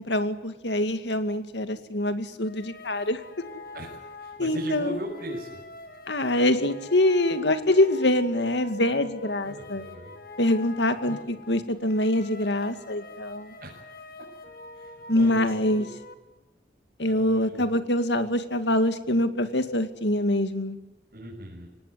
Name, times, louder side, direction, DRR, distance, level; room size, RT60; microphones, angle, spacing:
voice 1, 0.0-3.2 4.4-5.0 6.1-9.8 10.4-13.5 15.1-15.9 17.0-20.8, left 1 dB, 85° left, 9 dB, 2.3 m, -24 dB
sound 1, 2.4-16.1, left 2 dB, 55° left, 2.7 m, -45 dB
voice 2, 3.7-5.6 9.4-10.1 11.1-11.2 13.6-13.8 14.7-15.4 15.7-15.8 17.0-17.6 21.1-21.7, equal, 55° right, -3 dB, 6.4 m, -39 dB
24.5 x 19.0 x 9.8 m, 1.1 s
head